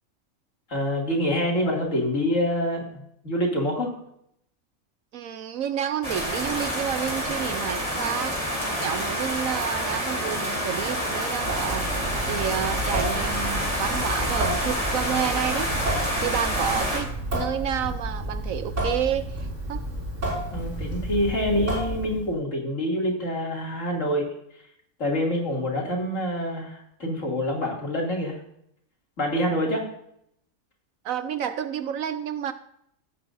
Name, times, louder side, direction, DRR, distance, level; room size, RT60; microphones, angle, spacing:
voice 1, 0.7-3.9 20.5-24.3 25.0-28.3 29.2-29.8, equal, 60° left, -1 dB, 3.0 m, -26 dB
voice 2, 5.1-11.9 12.3-15.7 16.2-19.8 31.0-32.5, right 9 dB, 75° right, 11 dB, 1.0 m, -30 dB
sound 1, 6.0-17.0, equal, 25° right, 4.2 m, -28 dB
Water tap faucet / Sink (filling or washing) / Drip, 11.4-22.3, right 1 dB, 55° right, 6.0 m, -31 dB
18.5 x 8.7 x 2.6 m, 0.72 s
omnidirectional pair, 1.5 m